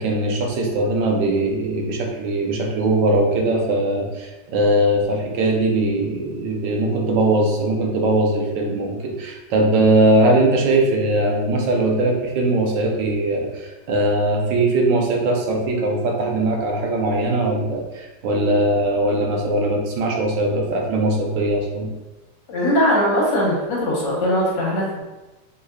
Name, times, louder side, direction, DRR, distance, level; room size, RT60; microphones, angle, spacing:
voice 1, 0.0-21.9, right 2 dB, 85° right, 1 dB, 1.5 m, -20 dB
voice 2, 22.5-25.0, equal, 85° left, -3 dB, 1.8 m, -20 dB
5.5 x 3.6 x 2.3 m, 1.1 s
omnidirectional pair, 1.9 m